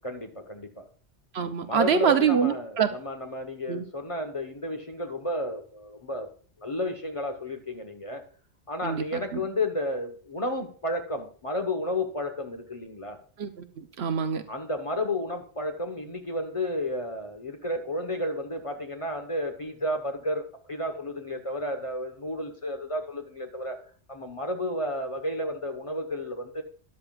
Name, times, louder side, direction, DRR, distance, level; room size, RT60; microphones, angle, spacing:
voice 1, 0.0-0.8 1.6-6.3 6.6-8.2 8.7-13.2 14.5-23.8 24.1-26.6, left 1 dB, 30° left, 5 dB, 1.1 m, -32 dB
voice 2, 1.3-2.9 3.7-3.8 8.8-9.4 13.4-14.4, right 7 dB, 65° right, 9 dB, 1.0 m, -25 dB
12.5 x 11.0 x 2.4 m, 0.42 s
omnidirectional pair, 1.2 m